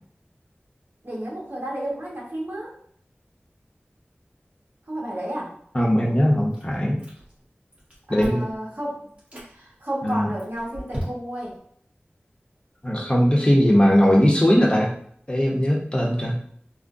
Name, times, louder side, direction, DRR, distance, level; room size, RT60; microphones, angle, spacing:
voice 1, 1.0-2.7 4.9-5.5 8.1-9.1 9.5-11.6, right 1 dB, 55° right, -5 dB, 1.4 m, -31 dB
voice 2, 5.7-7.0 8.1-8.5 10.0-10.3 12.8-14.9 15.3-16.4, equal, 25° left, -3 dB, 0.9 m, -19 dB
Chewing mastication, 6.5-7.4 7.7-8.6 9.1-9.5 10.1-11.5, equal, 30° right, 1.5 m, -37 dB
3.6 x 2.2 x 2.6 m, 0.63 s
wide cardioid pair, 45°, 4 cm